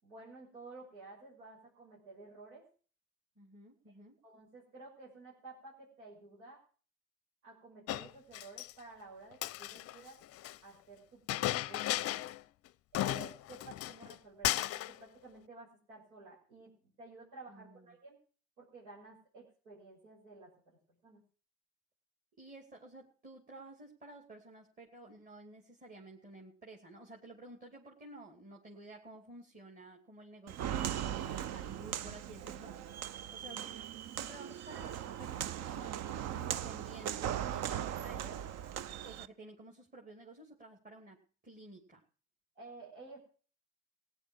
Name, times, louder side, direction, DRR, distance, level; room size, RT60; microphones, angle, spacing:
voice 1, 0.0-2.6 4.2-6.6 7.4-10.2 10.6-12.0 12.9-18.2 18.6-21.2 42.5-43.2, right 3 dB, 85° right, -4 dB, 5.8 m, -53 dB
voice 2, 3.4-4.2 17.5-17.9 22.4-33.0 33.3-33.7 34.0-38.5 39.0-42.0, right 2 dB, 20° right, 0 dB, 2.6 m, -53 dB
Chink clink, 7.9-8.7 9.3-10.6 11.3-12.4 12.7-12.8 12.9-14.1 14.4-15.0, left 15 dB, 40° left, 0.6 m, -35 dB
Walk footsteps, 30.5-39.3, right 10 dB, 45° right, 0.7 m, -39 dB
16.5 x 9.7 x 6.3 m, 0.41 s
supercardioid pair, 100°, 37 cm